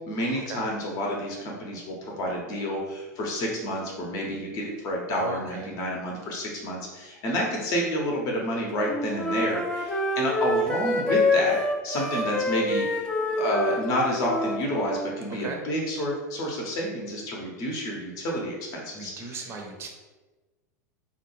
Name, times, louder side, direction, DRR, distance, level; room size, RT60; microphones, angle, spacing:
voice 1, 0.0-13.0 13.4-19.4, equal, 35° left, -1 dB, 0.7 m, -29 dB
voice 2, 5.1-5.8 15.4-15.6 18.9-19.9, right 4 dB, 25° right, 2 dB, 0.6 m, -37 dB
Wind instrument woodwind instrument, 8.7-15.1, left 2 dB, 10° left, 0.4 m, -27 dB
3.5 x 2.2 x 3.1 m, 1.2 s
figure-of-eight pair, 85°, 9 cm